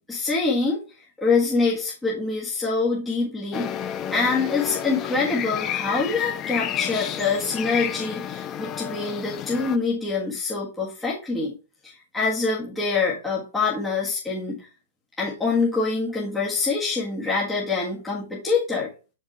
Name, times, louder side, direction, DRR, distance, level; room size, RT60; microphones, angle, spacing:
voice 1, 0.1-0.8 1.2-3.7 4.1-11.5 11.8-14.7 15.2-18.9, left 4 dB, 10° left, -6 dB, 1.7 m, -25 dB
sound 1, 3.5-9.8, left 10 dB, 30° left, 0.5 m, -30 dB
6.0 x 5.2 x 3.2 m, 0.34 s
figure-of-eight pair, 110°, 0 cm